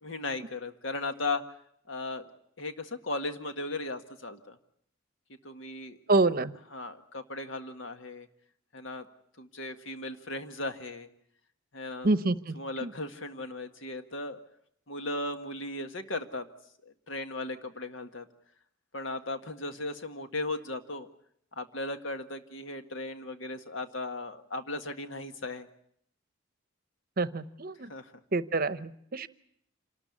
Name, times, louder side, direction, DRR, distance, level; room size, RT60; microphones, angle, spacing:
voice 1, 0.0-1.4 1.9-2.3 2.6-4.6 5.4-6.0 6.7-8.3 8.7-9.0 9.4-11.1 11.7-12.1 12.5-14.4 14.9-16.5 16.8-18.3 18.9-21.1 21.5-25.7 27.9-28.1, left 2 dB, 65° left, 7 dB, 1.8 m, -36 dB
voice 2, 6.1-6.6 12.0-12.5 12.8-12.9 27.2-27.9 28.3-29.3, right 2 dB, 45° right, 14 dB, 0.8 m, -27 dB
27.5 x 13.0 x 9.7 m, 0.69 s
head